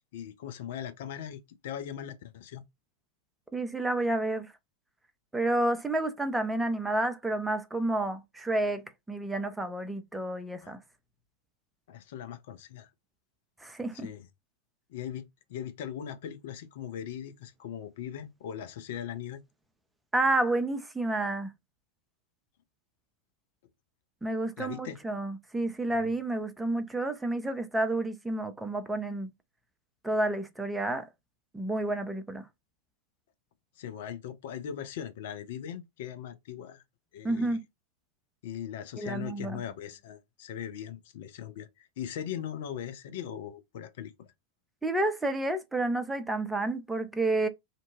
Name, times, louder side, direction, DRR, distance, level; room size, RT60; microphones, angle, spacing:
voice 1, 0.1-2.6 10.6-10.7 11.9-12.9 13.9-14.3 14.9-19.4 24.6-25.0 25.9-26.1 33.8-36.8 37.1-37.6 38.4-44.3, left 9 dB, 55° left, 0.4 m, -39 dB
voice 2, 3.5-4.5 5.3-8.8 9.1-10.8 13.6-14.1 20.1-21.5 24.2-29.3 30.0-31.1 31.5-32.4 37.2-37.6 39.0-39.6 44.8-47.5, right 2 dB, 5° right, 0.5 m, -30 dB
2.6 x 2.2 x 2.7 m
figure-of-eight pair, 90°, 0 cm